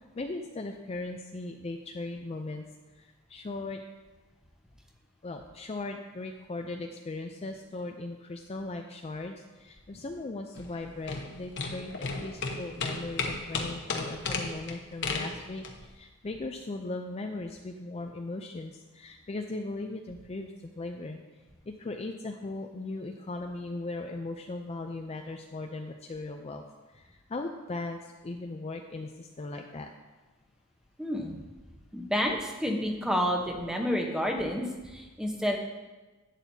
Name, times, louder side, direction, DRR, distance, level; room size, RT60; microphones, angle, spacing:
voice 1, 0.0-2.7 3.0-3.8 5.2-21.2 21.7-26.6 26.9-29.9, left 2 dB, 30° left, 4 dB, 0.4 m, -38 dB
sound 1, 10.6-15.9, left 3 dB, 55° left, 1.0 m, -34 dB
voice 2, 31.0-31.4 31.9-35.6, equal, 5° right, 1 dB, 0.9 m, -29 dB
11.5 x 9.1 x 2.7 m, 1.2 s
head